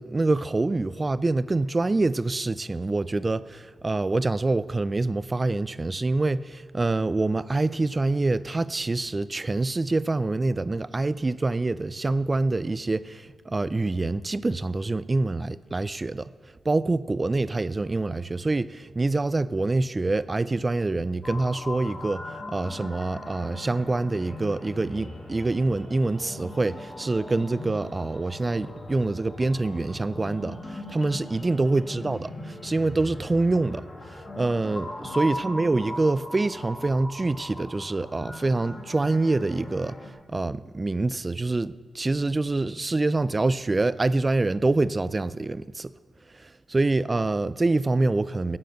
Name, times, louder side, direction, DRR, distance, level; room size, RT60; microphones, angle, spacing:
voice 1, 0.0-16.3 16.7-40.0 40.3-45.9 46.4-48.6, right 2 dB, 35° right, 0.4 m, -26 dB
sound 1, 21.2-40.1, left 1 dB, 40° left, 2.6 m, -39 dB
9.5 x 9.1 x 7.9 m
supercardioid pair, 40°, 0 cm